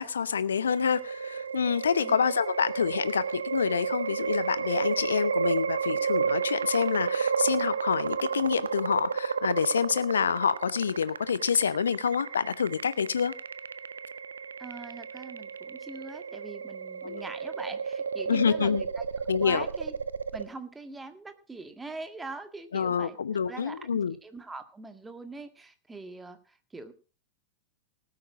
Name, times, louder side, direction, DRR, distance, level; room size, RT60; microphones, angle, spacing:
voice 1, 0.0-13.3 17.0-17.2 18.3-18.8 19.3-19.7 22.7-24.2, left 7 dB, 70° left, 0.8 m, -27 dB
sound 1, 0.7-20.5, right 6 dB, 70° right, 0.7 m, -32 dB
voice 2, 14.6-20.0 20.3-23.2 23.5-26.9, right 3 dB, 10° right, 1.8 m, -43 dB
18.5 x 8.7 x 4.8 m
figure-of-eight pair, 90°, 0 cm